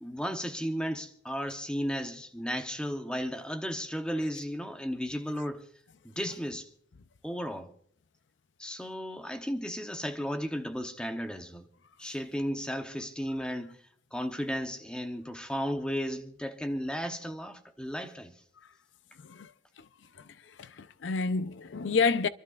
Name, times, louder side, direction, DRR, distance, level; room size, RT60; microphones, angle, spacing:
voice 1, 0.0-5.6 6.0-6.7 7.2-7.7 8.6-11.7 12.0-13.8 14.1-18.3, equal, 5° left, 0.9 m, -34 dB
voice 2, 20.6-22.3, left 4 dB, 90° left, 0.5 m, -28 dB
27.0 x 12.5 x 2.4 m
head